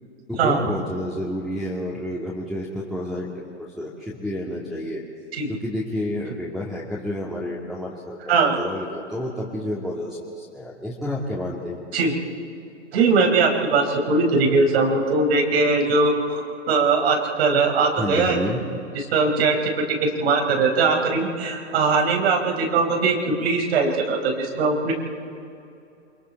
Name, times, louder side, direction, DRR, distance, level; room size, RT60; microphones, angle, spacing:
voice 1, 0.3-3.3 3.8-5.0 5.5-11.8 18.0-18.6, left 1 dB, ahead, -5 dB, 2.2 m, -30 dB
voice 2, 12.9-18.4 18.9-24.9, right 4 dB, 60° right, 1 dB, 4.6 m, -20 dB
28.0 x 22.0 x 4.6 m, 2.6 s
hypercardioid pair, 135°, 36 cm